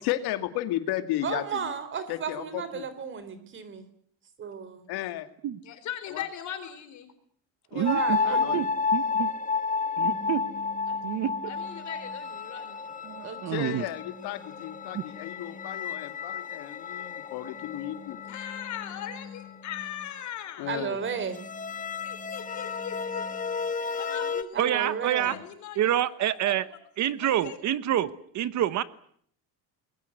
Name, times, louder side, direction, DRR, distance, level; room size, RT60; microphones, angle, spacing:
voice 1, 0.0-1.7 2.1-2.8 4.9-5.3 6.1-6.2 7.7-7.9 8.2-8.7 13.5-18.2 20.6-21.0 25.2-25.4, left 13 dB, 85° left, 9 dB, 2.3 m, -34 dB
voice 2, 1.2-3.9 4.4-4.9 7.7-8.7 13.2-13.6 20.7-21.4 24.5-25.4, right 6 dB, 30° right, 13 dB, 3.7 m, -34 dB
voice 3, 5.6-7.1 10.9-11.0 11.5-13.0 18.3-20.7 22.0-23.3 23.9-25.9 26.5-26.6 27.2-27.6, left 10 dB, 50° left, 9 dB, 4.1 m, -40 dB
voice 4, 7.7-8.2 8.5-8.6 8.9-9.3 10.0-10.4 11.0-11.3 13.1-13.8 14.9-15.0 24.6-25.3 25.8-26.6 27.0-28.1 28.3-28.8, right 11 dB, 50° right, 15 dB, 1.2 m, -27 dB
sound 1, 7.8-19.5 21.3-24.4, left 5 dB, 20° left, 1.2 m, -32 dB
sound 2, 10.1-12.3 12.9-16.1 17.2-20.2 20.6-23.6, left 5 dB, ahead, 3.0 m, -48 dB
26.5 x 21.5 x 7.9 m, 0.63 s
cardioid pair, 175°, 38 cm